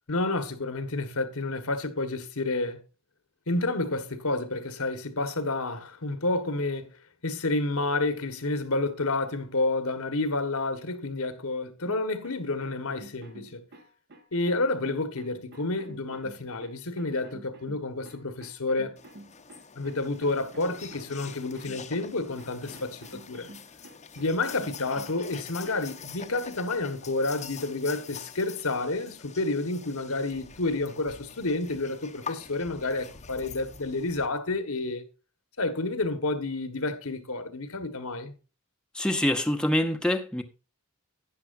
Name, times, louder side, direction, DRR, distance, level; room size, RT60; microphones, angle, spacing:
voice 1, 0.1-2.8 3.5-6.9 7.2-13.6 14.3-19.0 19.7-23.5 24.2-35.0 35.6-38.3, left 2 dB, 75° left, 1.5 m, -30 dB
sound 1, 11.8-25.9, right 2 dB, 50° right, 1.5 m, -50 dB
sound 2, 19.0-34.3, left 6 dB, 35° left, 0.9 m, -45 dB
voice 2, 38.9-40.4, left 1 dB, 5° left, 0.9 m, -25 dB
12.0 x 9.8 x 2.6 m
head